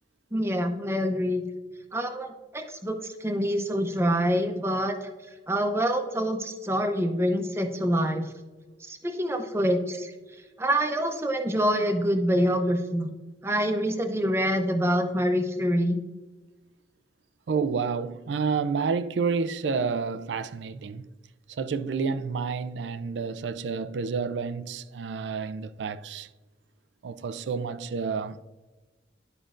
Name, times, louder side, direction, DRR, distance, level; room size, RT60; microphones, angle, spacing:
voice 1, 0.3-1.4 1.9-5.1 5.5-8.2 8.9-10.1 10.6-13.1 13.4-16.0, equal, 15° right, 0.6 m, -26 dB
voice 2, 17.5-21.1 21.5-26.3 27.0-28.4, right 5 dB, 85° right, 0.4 m, -29 dB
11.0 x 5.1 x 2.5 m
head